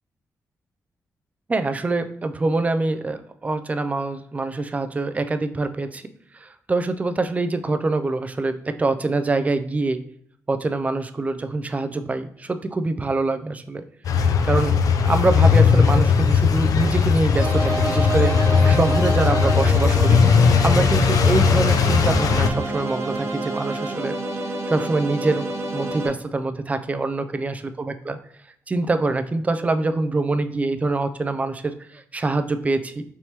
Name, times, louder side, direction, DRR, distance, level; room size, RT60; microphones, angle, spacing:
voice 1, 1.5-6.0 6.4-10.0 10.5-13.8 14.4-14.8 15.0-20.2 20.6-24.1 24.7-25.5 25.7-27.6 27.9-28.2 28.7-33.0, right 3 dB, 25° right, 9 dB, 0.4 m, -24 dB
sound 1, 14.0-22.5, left 6 dB, 80° left, 0.4 m, -18 dB
sound 2, 17.4-26.1, right 2 dB, 50° right, 0.8 m, -28 dB
3.4 x 2.9 x 4.2 m, 0.65 s
cardioid pair, 80°, 6 cm